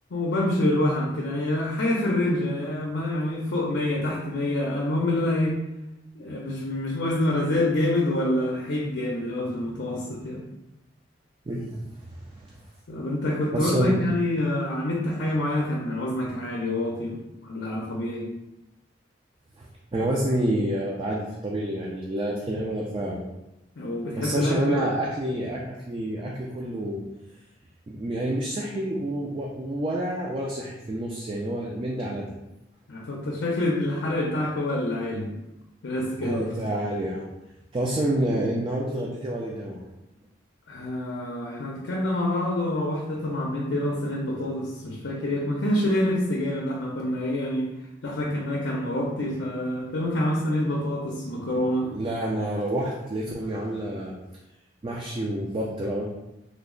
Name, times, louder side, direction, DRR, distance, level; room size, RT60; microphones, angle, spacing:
voice 1, 0.1-5.6 6.2-10.4 12.9-18.3 23.8-24.8 32.9-35.3 35.8-36.4 40.7-47.7 48.0-51.9, left 1 dB, 75° left, -2 dB, 0.5 m, -26 dB
voice 2, 11.5-11.8 12.1-12.2 12.5-12.6 13.5-13.9 19.6-19.7 19.9-23.2 24.1-27.0 27.9-32.3 36.2-37.3 37.7-39.8 51.8-54.1 54.8-56.0, right 1 dB, 30° right, -2 dB, 0.4 m, -28 dB
3.2 x 2.0 x 3.7 m, 0.94 s
head